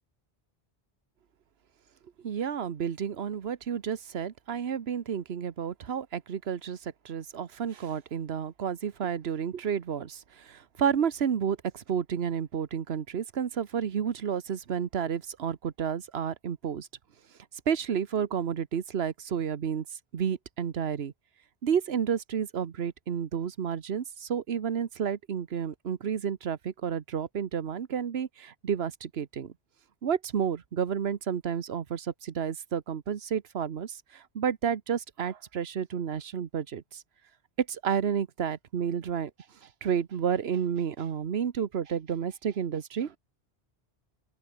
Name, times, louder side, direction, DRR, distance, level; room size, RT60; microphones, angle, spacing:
voice 1, 2.2-16.9 17.7-19.8 20.1-21.1 21.6-29.5 30.0-37.0 37.6-39.3 39.6-43.2, right 7 dB, 80° right, 1.3 m, -31 dB
open air
omnidirectional pair, 1.0 m